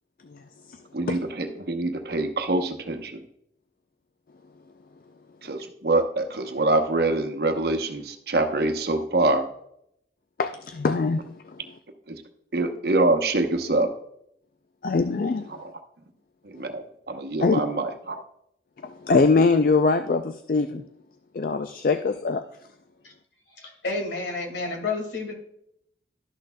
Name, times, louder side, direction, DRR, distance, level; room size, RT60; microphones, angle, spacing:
voice 1, 0.9-3.2 5.4-9.5 12.1-12.2 12.5-13.9 15.5-15.7 16.4-18.2, right 2 dB, 60° right, 6 dB, 0.9 m, -25 dB
voice 2, 10.4-11.6 14.8-15.6 16.6-16.7 17.4-17.6 18.8-20.8 21.3-22.4, left 4 dB, 50° left, 9 dB, 0.3 m, -23 dB
voice 3, 23.6-25.3, left 3 dB, 85° left, 1 dB, 2.1 m, -30 dB
12.0 x 6.4 x 2.2 m, 0.73 s
head